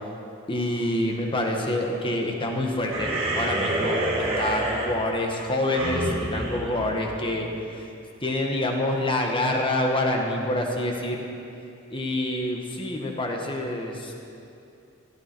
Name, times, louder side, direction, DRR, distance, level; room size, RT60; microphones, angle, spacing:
voice 1, 0.5-7.8 8.2-11.2 11.9-14.1, left 1 dB, 25° left, 1 dB, 1.6 m, -27 dB
sound 1, 2.9-7.6, right 1 dB, 30° right, 2.3 m, -28 dB
15.5 x 14.0 x 4.7 m, 2.7 s
head